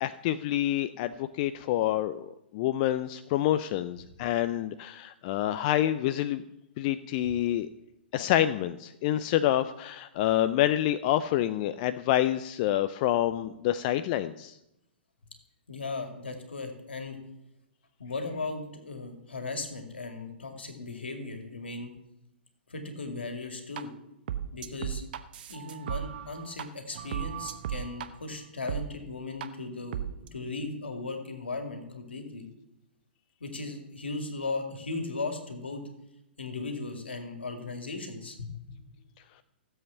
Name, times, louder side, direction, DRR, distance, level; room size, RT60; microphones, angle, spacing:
voice 1, 0.0-6.4 6.8-7.7 8.1-14.5, left 12 dB, 40° left, 12 dB, 0.5 m, -27 dB
voice 2, 15.7-17.2 18.0-21.9 22.7-23.9 24.5-25.0 25.5-30.0 30.3-32.5 33.4-35.8 36.4-38.8, left 3 dB, 80° left, 5 dB, 2.4 m, -37 dB
sound 1, 23.8-23.9 24.3-26.6 26.9-28.1 28.7-28.8 29.4-29.5 29.9-30.3, right 10 dB, 55° right, 0.9 m, -35 dB
15.5 x 7.9 x 5.8 m, 0.85 s
figure-of-eight pair, 110°, 6 cm